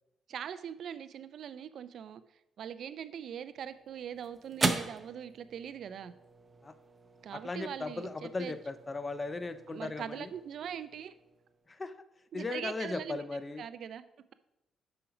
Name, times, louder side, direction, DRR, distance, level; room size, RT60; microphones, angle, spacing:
voice 1, 0.3-2.2 2.6-6.1 7.2-8.5 9.7-11.1 12.3-13.2 13.6-14.0, right 8 dB, 65° right, 14 dB, 0.4 m, -41 dB
sound 1, 3.3-11.9, right 3 dB, 30° right, 0.6 m, -40 dB
voice 2, 7.3-10.3 11.7-11.9 12.3-13.6, left 3 dB, 25° left, 12 dB, 0.5 m, -37 dB
5.9 x 5.1 x 4.9 m, 0.87 s
cardioid pair, 90°, 0 cm